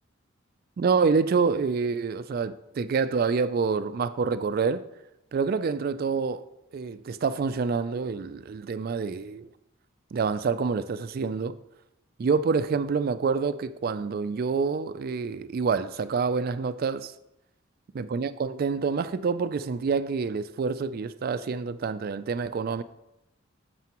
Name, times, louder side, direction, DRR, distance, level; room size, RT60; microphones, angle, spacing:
voice 1, 0.8-4.8 5.3-6.4 6.7-9.5 10.1-11.6 12.2-17.1 18.0-22.8, right 5 dB, 45° right, 0.3 m, -27 dB
9.2 x 6.9 x 3.0 m
head